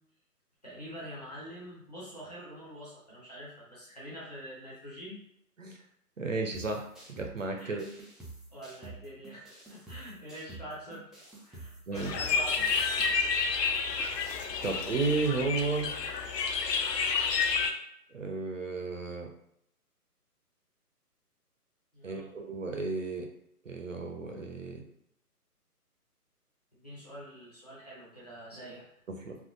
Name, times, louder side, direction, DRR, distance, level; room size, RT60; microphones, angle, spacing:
voice 1, 0.6-5.2 7.6-7.8 8.5-11.0 11.4-12.6 21.9-22.3 26.7-28.9, equal, 25° left, -9 dB, 0.7 m, -45 dB
voice 2, 6.2-7.8 11.9-12.1 14.6-15.9 18.1-19.3 22.0-23.3 23.7-24.8 29.1-29.4, right 3 dB, 55° right, 3 dB, 0.5 m, -33 dB
sound 1, 6.5-13.1, right 3 dB, ahead, 0.4 m, -49 dB
sound 2, 12.0-17.7, left 5 dB, 90° left, 0.6 m, -30 dB
3.4 x 2.2 x 2.5 m, 0.74 s
hypercardioid pair, 175°, 47 cm